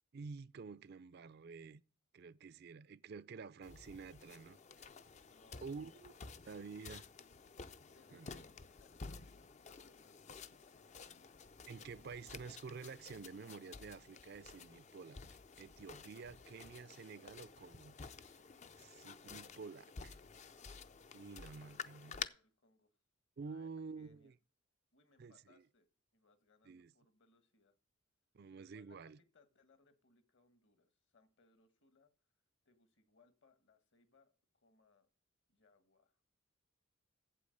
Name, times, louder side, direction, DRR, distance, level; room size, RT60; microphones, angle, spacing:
voice 1, 0.1-1.8 2.1-4.9 5.6-6.1 6.5-7.0 8.1-8.4 11.7-15.2 15.6-17.9 18.7-20.2 21.1-22.2 23.4-24.3 25.2-25.6 26.7-26.9 28.3-29.2, right 5 dB, 50° right, 0.4 m, -50 dB
sound 1, 3.6-22.3, left 5 dB, 35° left, 0.5 m, -52 dB
voice 2, 5.3-6.0 7.8-11.1 21.3-22.9 23.4-23.7 23.9-24.3 24.9-25.9 26.1-27.8 28.7-32.1 32.6-35.1 35.5-36.2, left 3 dB, 60° left, 1.6 m, -71 dB
sound 2, 8.5-16.0, left 3 dB, 80° left, 4.1 m, -81 dB
8.5 x 7.8 x 6.5 m
head